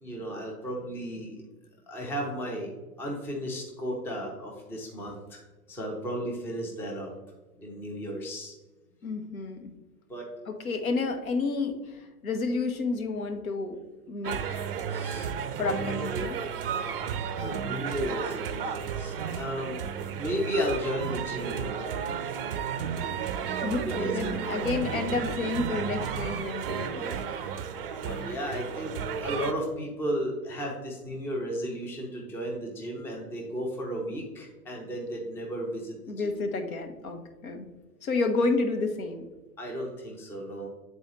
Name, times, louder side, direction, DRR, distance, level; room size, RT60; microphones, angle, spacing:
voice 1, 0.0-1.4 1.9-2.7 3.0-5.4 5.7-7.1 7.6-8.5 10.1-10.3 14.9-15.3 17.4-19.8 20.2-21.9 23.9-24.6 28.0-28.9 29.2-36.3 39.6-40.7, equal, 5° left, -1 dB, 0.6 m, -34 dB
voice 2, 9.0-9.7 10.5-13.8 14.1-14.8 15.6-16.5 17.4-17.5 23.6-27.4 36.1-37.7 38.0-39.3, left 3 dB, 65° left, 5 dB, 1.0 m, -30 dB
sound 1, 14.2-29.5, right 7 dB, 40° right, 0.5 m, -33 dB
8.9 x 4.0 x 3.0 m, 1.2 s
figure-of-eight pair, 110°, 45 cm